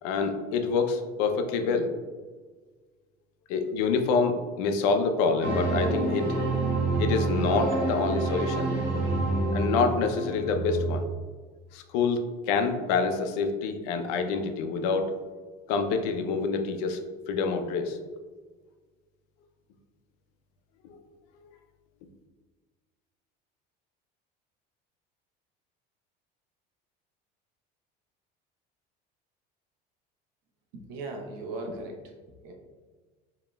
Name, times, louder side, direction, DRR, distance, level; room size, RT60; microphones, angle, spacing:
voice 1, 0.0-1.9 3.5-6.3 7.0-8.7 9.5-11.0 11.7-12.2 12.5-15.1 15.7-17.0 17.3-18.0 20.8-21.0, left 4 dB, 80° left, 6 dB, 0.5 m, -27 dB
sound 1, 5.4-11.0, right 2 dB, 10° right, 1.3 m, -27 dB
voice 2, 30.7-32.0 32.4-32.5, right 2 dB, 65° right, 1 dB, 0.8 m, -37 dB
5.1 x 2.9 x 2.2 m, 1.4 s
cardioid pair, 180°, 20 cm